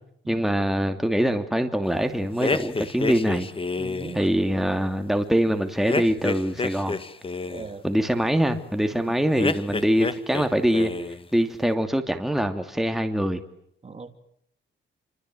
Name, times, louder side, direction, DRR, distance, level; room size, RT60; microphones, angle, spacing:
voice 1, 0.3-3.5 4.1-7.0 7.8-10.9 11.3-13.4, equal, ahead, 6 dB, 2.7 m, -23 dB
sound 1, 2.4-4.2 5.9-7.7 9.4-10.5 10.7-11.3, left 3 dB, 25° left, 2.1 m, -29 dB
voice 2, 3.8-4.3 7.5-7.8 8.9-9.2 13.8-14.1, right 4 dB, 30° right, 8 dB, 3.4 m, -38 dB
30.0 x 25.0 x 7.9 m, 0.71 s
cardioid pair, 120°, 20 cm